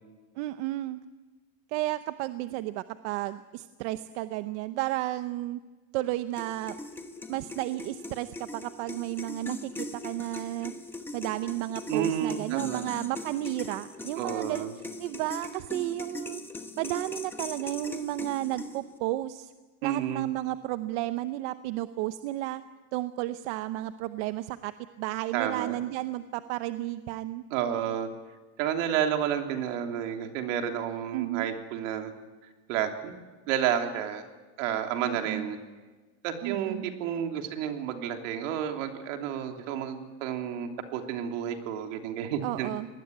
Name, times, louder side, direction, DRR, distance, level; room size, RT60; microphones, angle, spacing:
voice 1, 0.4-1.0 1.7-5.6 5.9-6.8 7.3-10.7 11.1-14.7 15.0-16.4 16.8-19.5 19.8-22.6 22.9-24.7 25.0-27.4 31.1-31.5 35.0-35.5 36.4-36.9 42.4-42.9, right 16 dB, 60° right, 11 dB, 0.9 m, -32 dB
sound 1, 6.4-19.0, left 2 dB, 5° left, 1.0 m, -40 dB
voice 2, 11.9-12.8 14.2-14.7 19.8-20.3 25.3-25.8 27.5-28.1 28.6-32.1 32.7-33.2 33.5-34.2 34.6-35.6 36.2-42.7, right 9 dB, 80° right, 4 dB, 3.2 m, -31 dB
24.0 x 19.5 x 9.4 m, 1.3 s
cardioid pair, 175°, 38 cm